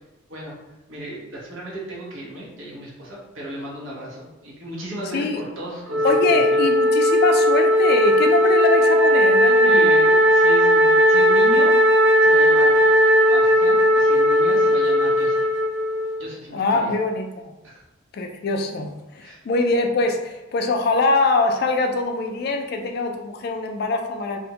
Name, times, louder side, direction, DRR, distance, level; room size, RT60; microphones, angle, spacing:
voice 1, 0.9-6.6 9.6-11.7 12.2-12.8 13.3-15.5 16.2-17.0 17.6-17.8 19.2-19.4, right 1 dB, 80° right, -4 dB, 0.9 m, -35 dB
Wind instrument woodwind instrument, 5.9-16.3, equal, 60° right, 0.3 m, -17 dB
voice 2, 6.0-10.0 16.5-17.5 18.1-24.4, left 3 dB, 50° left, 4 dB, 0.3 m, -23 dB
2.5 x 2.1 x 2.8 m, 1.0 s
head